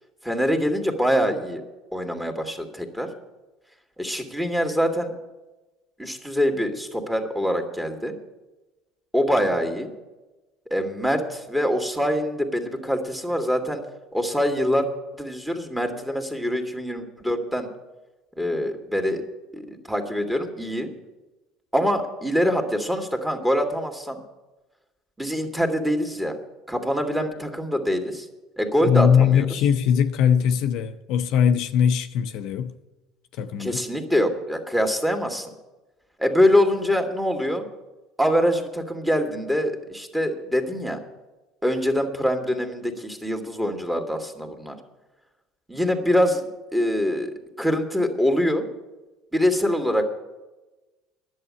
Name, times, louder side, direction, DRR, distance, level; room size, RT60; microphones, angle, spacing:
voice 1, 0.2-1.6 1.9-3.1 4.0-5.1 6.0-8.1 9.1-9.9 10.7-13.8 14.1-14.9 15.1-17.7 18.4-19.2 19.5-20.9 21.7-24.2 25.2-26.4 26.7-28.3 28.6-29.4 33.6-35.5 36.2-37.6 38.2-41.0 41.6-44.8 45.7-47.3 47.6-48.7 49.3-50.1, equal, 5° right, 2.1 m, -24 dB
voice 2, 28.8-32.7 33.4-33.8, left 8 dB, 60° left, 0.7 m, -20 dB
11.0 x 7.4 x 9.6 m
hypercardioid pair, 70°, 0 cm